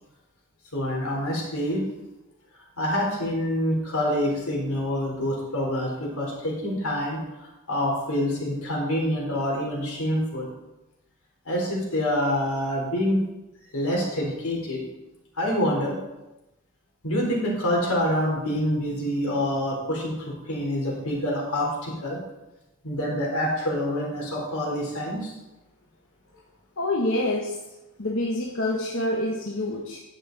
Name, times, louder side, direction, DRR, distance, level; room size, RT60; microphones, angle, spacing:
voice 1, 0.7-1.8 2.8-7.2 7.7-10.5 11.4-13.2 13.7-14.8 15.3-15.9 17.0-22.2 22.8-25.3, equal, 90° left, -2 dB, 3.6 m, -26 dB
voice 2, 26.8-27.6 28.0-30.0, left 1 dB, 65° left, -1 dB, 1.1 m, -26 dB
10.5 x 8.3 x 3.9 m, 1.0 s
head